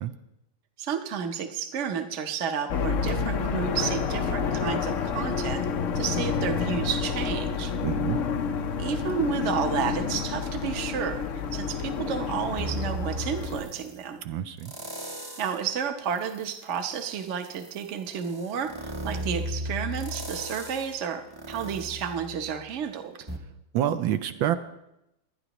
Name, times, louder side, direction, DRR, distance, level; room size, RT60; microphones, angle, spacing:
voice 1, 0.8-5.6 5.9-7.7 8.8-11.2 11.5-14.2 15.4-23.1, right 7 dB, 50° right, 6 dB, 0.9 m, -31 dB
sound 1, 2.7-13.6, left 6 dB, 75° left, 0.7 m, -29 dB
voice 2, 7.8-8.2 14.2-14.7 23.7-24.5, right 11 dB, 80° right, 10 dB, 1.3 m, -27 dB
sound 2, 12.6-14.0 14.6-15.7 16.1-22.8 23.3-23.4, equal, 25° right, 0.5 m, -36 dB
22.0 x 9.9 x 3.0 m, 0.86 s
omnidirectional pair, 2.2 m